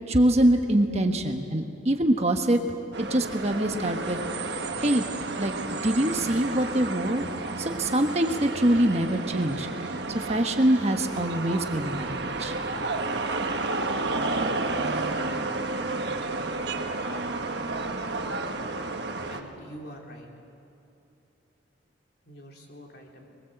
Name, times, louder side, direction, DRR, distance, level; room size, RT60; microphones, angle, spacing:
voice 1, 0.1-2.6 3.0-4.2 4.8-5.1 5.4-5.6 5.8-7.2 7.6-9.7 10.1-12.5, right 1 dB, 35° right, 4 dB, 1.3 m, -24 dB
sound 1, 2.9-19.4, right 3 dB, 60° right, 1.4 m, -31 dB
voice 2, 19.1-20.3 22.3-23.2, equal, 55° left, -1 dB, 3.6 m, -45 dB
23.0 x 22.0 x 7.9 m, 2.7 s
head